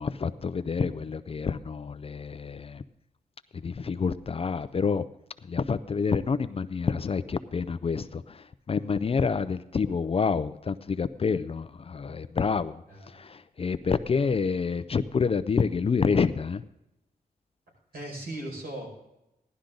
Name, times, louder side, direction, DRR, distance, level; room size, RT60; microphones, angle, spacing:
voice 1, 0.0-2.8 3.5-5.0 5.5-12.8 13.1-16.6, left 5 dB, 35° left, 13 dB, 0.4 m, -28 dB
voice 2, 17.9-18.9, right 1 dB, 70° right, -1 dB, 5.4 m, -37 dB
16.5 x 11.5 x 3.8 m, 0.88 s
wide cardioid pair, 155°, 16 cm